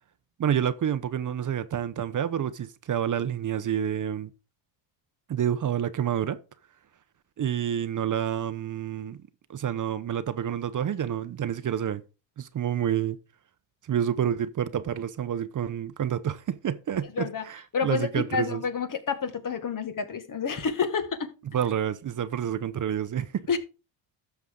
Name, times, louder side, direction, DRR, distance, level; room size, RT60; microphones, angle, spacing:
voice 1, 0.4-4.3 5.3-6.4 7.4-9.2 9.5-12.0 12.4-13.2 13.8-18.6 21.5-23.5, right 9 dB, 40° right, 0.8 m, -28 dB
voice 2, 17.7-21.3 23.5-23.6, left 6 dB, 45° left, 1.9 m, -29 dB
12.5 x 6.9 x 3.8 m
cardioid pair, 105°, 46 cm